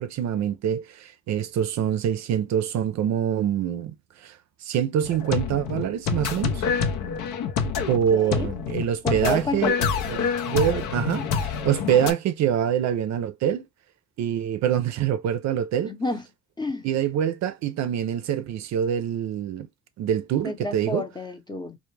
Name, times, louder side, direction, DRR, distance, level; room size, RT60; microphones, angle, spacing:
voice 1, 0.0-3.9 4.2-6.6 7.9-9.8 10.1-13.7 14.2-15.9 16.8-19.7 20.0-21.1, right 9 dB, 65° right, 0.4 m, -25 dB
sound 1, 5.0-12.1, left 6 dB, 85° left, 0.6 m, -27 dB
voice 2, 7.9-8.5 9.0-9.9 15.8-16.2 16.6-16.9 20.4-21.8, left 2 dB, 15° left, 0.6 m, -30 dB
2.1 x 2.1 x 3.1 m
cardioid pair, 90°, 30 cm